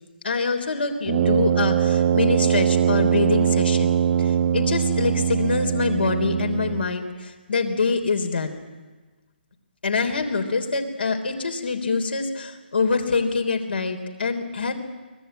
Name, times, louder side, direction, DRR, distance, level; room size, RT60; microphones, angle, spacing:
voice 1, 0.2-8.7 9.8-14.7, left 4 dB, 70° left, 4 dB, 3.4 m, -25 dB
Brass instrument, 1.0-6.9, right 8 dB, 40° right, 0.9 m, -21 dB
24.0 x 19.5 x 8.9 m, 1.3 s
figure-of-eight pair, 140°, 6 cm